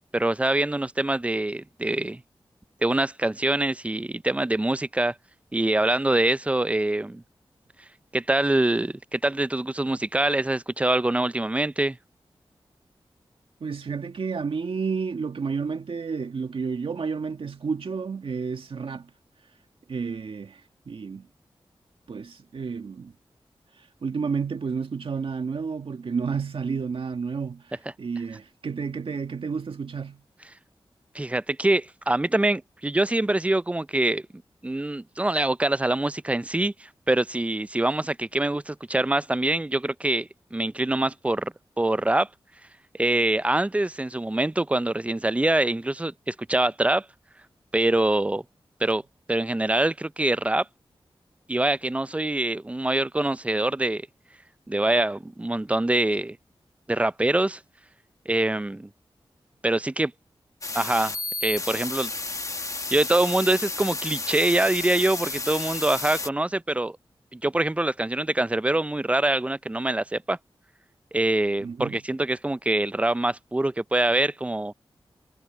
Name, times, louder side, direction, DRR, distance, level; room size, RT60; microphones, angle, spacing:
voice 1, 0.1-2.2 2.8-5.1 5.5-7.2 8.1-12.0 31.1-34.2 34.6-42.3 42.9-47.1 47.7-48.4 48.8-49.0 49.3-50.7 51.5-54.1 54.7-56.4 56.9-57.6 58.3-58.9 59.6-60.1 60.7-61.2 61.4-62.1 62.9-67.0 67.3-70.4 71.1-74.7, right 1 dB, 15° right, 0.4 m, -24 dB
voice 2, 13.6-19.1 19.9-21.3 22.1-23.1 23.8-30.2 71.6-72.0, right 5 dB, 75° right, 1.9 m, -31 dB
sound 1, 60.6-66.3, left 3 dB, 35° left, 1.1 m, -32 dB
wide cardioid pair, 80°, 9 cm